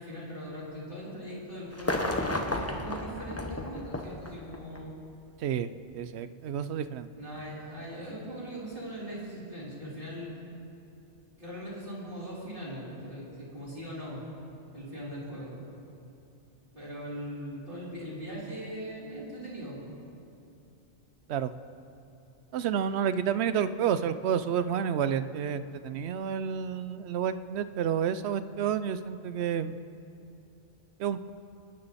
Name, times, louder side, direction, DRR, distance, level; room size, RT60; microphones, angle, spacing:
voice 1, 0.0-5.0 7.2-10.3 11.4-14.2 14.7-15.5 16.7-19.8, equal, 45° right, -9 dB, 4.0 m, -40 dB
sound 1, 1.7-4.8 5.9-6.0, left 1 dB, 15° left, 0.9 m, -32 dB
voice 2, 5.4-7.1 21.3-21.5 22.5-29.8 31.0-31.3, right 8 dB, 65° right, 13 dB, 0.8 m, -30 dB
25.0 x 9.8 x 4.2 m, 2.7 s
omnidirectional pair, 1.2 m